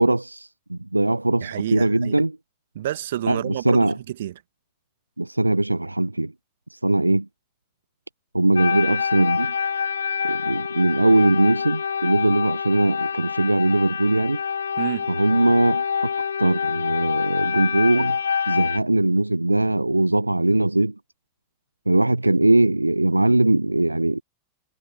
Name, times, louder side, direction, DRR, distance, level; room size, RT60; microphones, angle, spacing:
voice 1, 0.0-2.4 3.3-4.0 5.2-6.3 6.7-7.3 8.3-9.5 10.2-14.4 15.1-16.1 16.4-18.2 18.5-20.9 21.9-24.2, right 2 dB, 85° right, 0.5 m, -20 dB
voice 2, 1.4-2.2 2.7-4.3 14.8-15.1, right 12 dB, 60° right, 1.6 m, -29 dB
sound 1, 8.6-18.8, left 6 dB, 70° left, 1.3 m, -26 dB
figure-of-eight pair, 90°, 0 cm